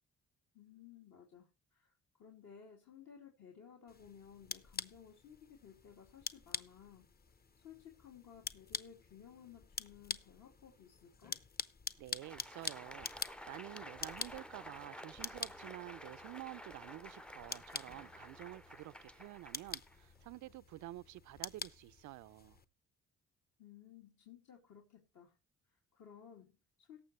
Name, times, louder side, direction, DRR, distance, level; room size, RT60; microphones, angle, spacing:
voice 1, 0.5-7.1 7.6-11.4 23.6-25.3 25.7-27.0, left 8 dB, 65° left, 2.5 m, -57 dB
sound 1, 3.9-22.7, left 4 dB, 30° left, 0.8 m, -47 dB
Crowd, 12.0-20.5, equal, 5° left, 0.5 m, -52 dB
voice 2, 12.0-22.6, right 17 dB, 75° right, 0.5 m, -50 dB
18.0 x 7.0 x 3.1 m
cardioid pair, 90°, 30 cm